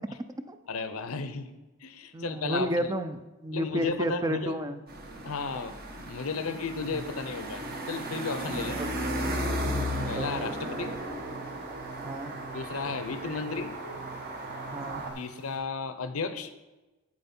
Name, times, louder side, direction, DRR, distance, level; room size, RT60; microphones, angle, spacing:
voice 1, 0.7-1.5 1.8-2.9 3.5-4.6 5.2-8.8 10.1-11.0 12.5-13.7 15.2-16.5, left 4 dB, 70° left, 11 dB, 0.6 m, -34 dB
voice 2, 2.1-4.8 6.9-7.0 8.6-8.9 9.7-10.3 12.0-12.3 14.7-15.0, equal, 15° right, 9 dB, 0.4 m, -32 dB
sound 1, 4.9-15.1, right 1 dB, 45° right, 1.1 m, -35 dB
sound 2, 7.6-15.6, right 4 dB, 70° right, 2.5 m, -48 dB
7.8 x 7.0 x 4.3 m, 1.1 s
head